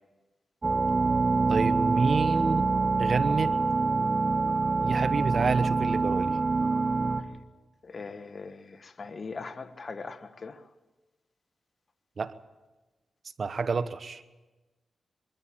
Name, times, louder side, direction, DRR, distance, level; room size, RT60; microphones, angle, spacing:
sound 1, 0.6-7.2, right 3 dB, 40° right, 1.5 m, -25 dB
voice 1, 1.5-2.6 3.0-3.6 4.8-6.4 12.2-12.3 13.4-14.2, right 4 dB, 60° right, 1.1 m, -29 dB
voice 2, 7.9-10.6, left 4 dB, 50° left, 1.4 m, -40 dB
22.5 x 14.0 x 8.7 m
cardioid pair, 55°, 0 cm